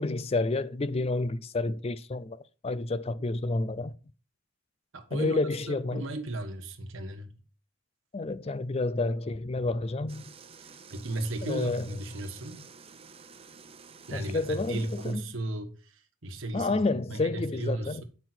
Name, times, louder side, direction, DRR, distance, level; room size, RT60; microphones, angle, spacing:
voice 1, 0.0-3.9 5.1-6.1 8.1-10.3 11.4-11.9 14.1-15.2 16.5-18.0, left 2 dB, 30° left, 0.4 m, -30 dB
voice 2, 4.9-5.4 5.7-7.4 10.6-12.7 14.1-16.8 17.1-18.0, right 1 dB, 70° right, 1.3 m, -35 dB
sound 1, 10.1-15.1, right 5 dB, 30° right, 0.6 m, -50 dB
9.1 x 5.9 x 4.4 m
head